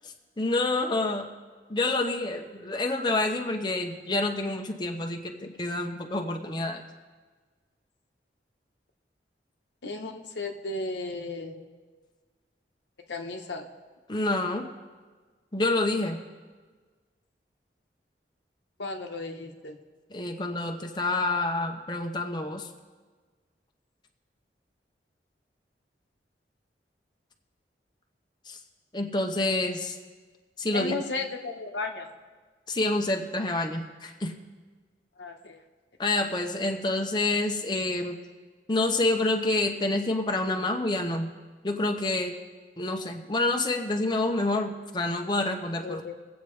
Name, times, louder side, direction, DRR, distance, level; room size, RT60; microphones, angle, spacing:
voice 1, 0.4-1.3 1.7-6.8 14.1-14.7 15.5-16.2 20.1-22.7 28.5-28.6 28.9-30.0 30.6-30.9 32.7-34.3 36.0-38.2 38.7-41.3 41.6-42.3 42.8-46.0, left 2 dB, 25° left, 3 dB, 0.7 m, -28 dB
voice 2, 9.8-11.6 13.1-13.7 18.8-19.8 30.7-32.1 35.2-35.6 45.8-46.1, left 3 dB, 85° left, 3 dB, 1.1 m, -34 dB
22.5 x 8.1 x 3.2 m, 1.4 s
head